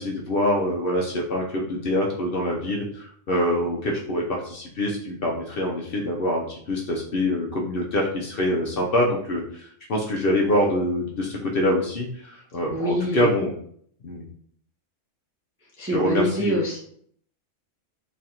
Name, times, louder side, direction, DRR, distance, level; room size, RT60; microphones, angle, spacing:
voice 1, 0.0-13.5 14.0-14.2 15.9-16.5, left 1 dB, 55° left, -1 dB, 0.7 m, -25 dB
voice 2, 12.7-13.3 15.6-16.8, equal, 20° right, -3 dB, 0.3 m, -25 dB
3.1 x 2.5 x 4.2 m, 0.62 s
omnidirectional pair, 1.4 m